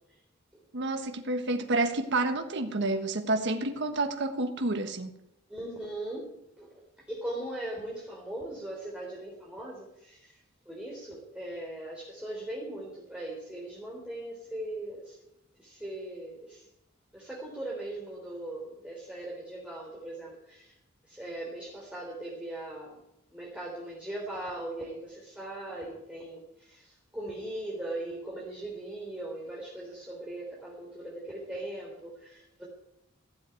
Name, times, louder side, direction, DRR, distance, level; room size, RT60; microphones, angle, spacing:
voice 1, 0.7-5.1, right 2 dB, 60° right, 6 dB, 1.4 m, -29 dB
voice 2, 5.5-15.2 15.6-16.7 17.1-20.7 21.0-22.9 23.3-32.7, right 1 dB, 5° right, -5 dB, 3.6 m, -39 dB
16.0 x 7.9 x 9.2 m, 0.84 s
head